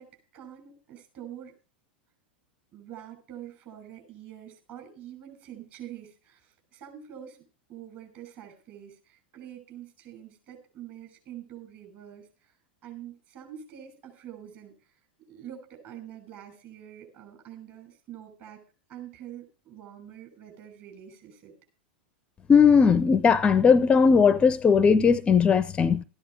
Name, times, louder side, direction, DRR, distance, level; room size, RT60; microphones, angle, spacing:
voice 1, 0.0-1.6 2.7-7.4 7.7-18.6 18.9-21.5, right 10 dB, 40° right, 6.1 m, -46 dB
voice 2, 22.5-26.0, left 6 dB, 20° left, 0.6 m, -18 dB
14.0 x 10.0 x 4.7 m
figure-of-eight pair, 90°, 6 cm